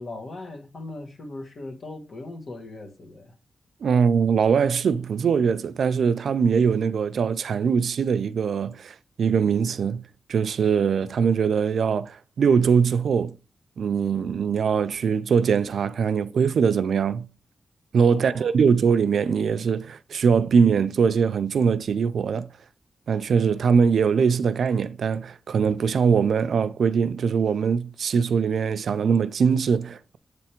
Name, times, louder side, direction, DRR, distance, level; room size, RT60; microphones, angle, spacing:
voice 1, 0.0-3.4 18.1-18.5, left 2 dB, 60° left, 1.4 m, -39 dB
voice 2, 3.8-10.0 10.3-13.4 13.8-17.3 17.9-22.5 23.1-30.2, right 6 dB, 85° right, 0.4 m, -22 dB
8.2 x 3.4 x 4.3 m
wide cardioid pair, 125°, 0 cm